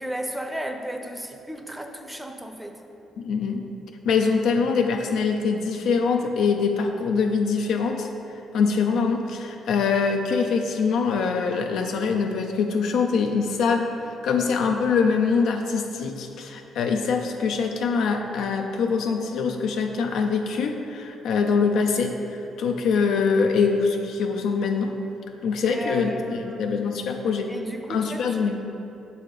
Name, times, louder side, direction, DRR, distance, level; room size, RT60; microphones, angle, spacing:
voice 1, 0.0-2.8 25.6-26.9 27.5-28.6, equal, 5° right, 4 dB, 0.6 m, -34 dB
voice 2, 3.2-3.6 4.1-8.1 8.5-22.1 22.6-24.9 25.4-27.5 27.9-28.6, left 5 dB, 80° left, 3 dB, 0.4 m, -23 dB
6.6 x 4.1 x 4.8 m, 2.9 s
cardioid pair, 90°, 0 cm